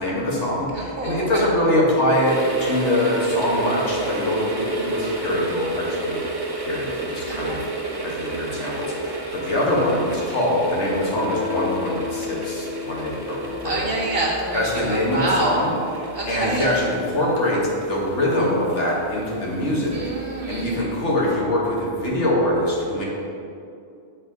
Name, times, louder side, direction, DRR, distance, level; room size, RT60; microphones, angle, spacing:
voice 1, 0.0-6.2 6.6-7.6 8.0-13.9 14.5-20.0 20.5-23.0, left 1 dB, 75° left, -4 dB, 1.7 m, -23 dB
voice 2, 0.7-1.4 7.3-7.6 13.5-15.5 16.1-16.7 19.9-20.8, right 2 dB, 55° right, -4 dB, 1.6 m, -27 dB
sound 1, 2.2-20.9 21.2-21.3, right 2 dB, 20° right, 0.8 m, -32 dB
Guitar, 11.1-16.6, left 5 dB, 60° left, 0.9 m, -34 dB
7.8 x 4.2 x 5.1 m, 2.5 s
omnidirectional pair, 1.2 m